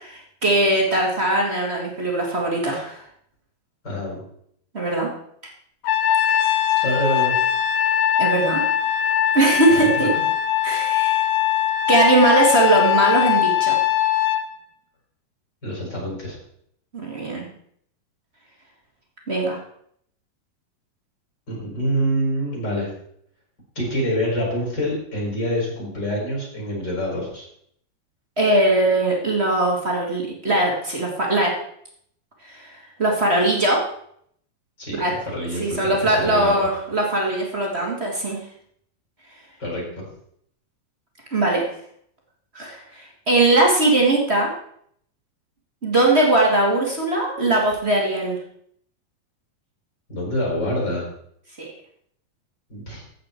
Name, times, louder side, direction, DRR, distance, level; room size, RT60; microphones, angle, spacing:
voice 1, 0.0-3.0 4.7-5.1 6.3-6.6 8.2-8.6 9.3-10.1 10.6-11.2 11.9-13.8 16.9-17.5 19.3-19.6 28.4-31.6 32.4-33.8 34.9-35.2 35.6-38.4 41.3-41.7 42.5-44.5 45.8-48.4 51.6-51.7, right 2 dB, 25° right, -1 dB, 1.5 m, -20 dB
voice 2, 3.8-4.2 6.8-7.4 9.7-10.1 15.6-16.4 21.5-22.9 23.8-27.5 34.8-35.0 35.3-36.7 39.6-39.8 50.1-51.1 52.7-53.0, equal, 25° left, -3 dB, 5.6 m, -26 dB
Trumpet, 5.8-14.4, left 11 dB, 85° left, 2.8 m, -21 dB
14.5 x 8.5 x 4.5 m, 0.68 s
omnidirectional pair, 4.4 m